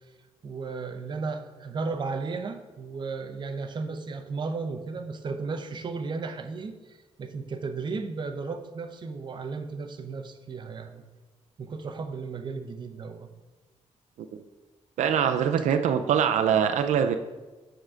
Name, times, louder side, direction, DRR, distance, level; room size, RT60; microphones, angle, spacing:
voice 1, 0.4-11.0 11.6-13.3, right 4 dB, 40° right, 7 dB, 0.6 m, -34 dB
voice 2, 15.0-17.2, right 8 dB, 85° right, 7 dB, 0.4 m, -23 dB
7.3 x 3.8 x 6.2 m, 1.2 s
wide cardioid pair, 140°, 12 cm